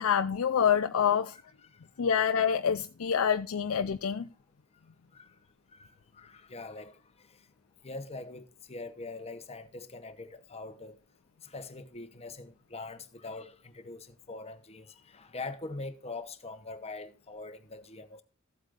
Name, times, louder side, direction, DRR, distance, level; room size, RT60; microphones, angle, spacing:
voice 1, 0.0-1.4 2.0-4.3, left 7 dB, 75° left, 0.5 m, -26 dB
voice 2, 1.3-1.8 5.1-5.3 5.7-7.3 7.8-11.0 11.4-18.2, left 3 dB, 30° left, 1.0 m, -43 dB
15.0 x 8.1 x 2.5 m
head